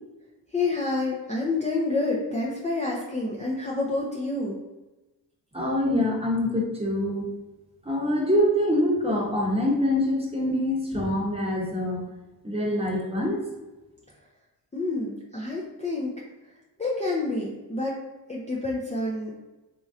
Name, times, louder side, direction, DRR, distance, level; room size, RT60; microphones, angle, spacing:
voice 1, 0.5-4.6 14.7-16.1 16.8-18.0 18.3-19.3, left 2 dB, 15° left, -4 dB, 0.5 m, -28 dB
voice 2, 5.5-7.3 7.8-12.0 12.4-13.4, left 1 dB, 15° right, -2 dB, 0.9 m, -25 dB
3.0 x 2.7 x 2.4 m, 1.1 s
cardioid pair, 55°, 44 cm